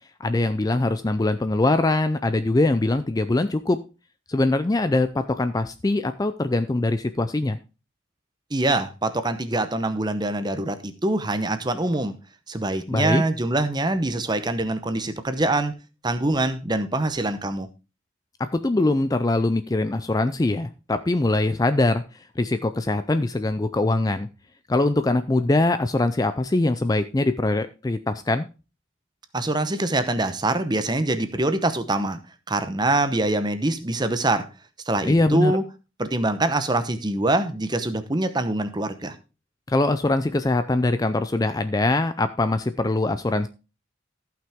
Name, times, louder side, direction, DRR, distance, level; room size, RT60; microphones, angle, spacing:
voice 1, 0.2-3.8 4.3-7.6 12.9-13.2 18.4-22.0 22.4-24.3 24.7-28.5 35.0-35.6 39.7-43.5, left 2 dB, 20° left, 11 dB, 0.4 m, -22 dB
voice 2, 8.5-12.2 12.5-15.7 16.0-17.7 29.3-32.2 32.5-34.5 34.9-35.6 36.0-39.1, right 2 dB, 20° right, 10 dB, 0.8 m, -24 dB
14.5 x 5.9 x 3.6 m, 0.31 s
head